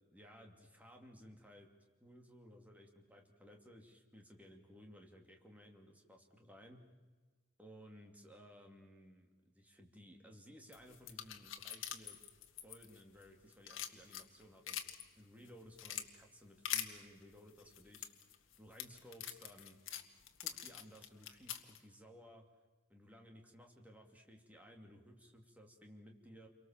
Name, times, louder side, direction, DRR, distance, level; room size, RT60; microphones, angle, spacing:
voice 1, 0.1-1.7 2.0-6.8 7.6-9.3 9.5-12.2 12.6-14.8 15.2-18.1 18.6-19.8 20.4-22.4 22.9-26.5, equal, 5° right, 2 dB, 2.7 m, -58 dB
sound 1, 10.7-13.2 13.5-15.0 15.5-16.1 16.7-16.9 17.6-21.8, left 10 dB, 60° left, 1.9 m, -44 dB
29.5 x 24.0 x 7.4 m, 1.4 s
head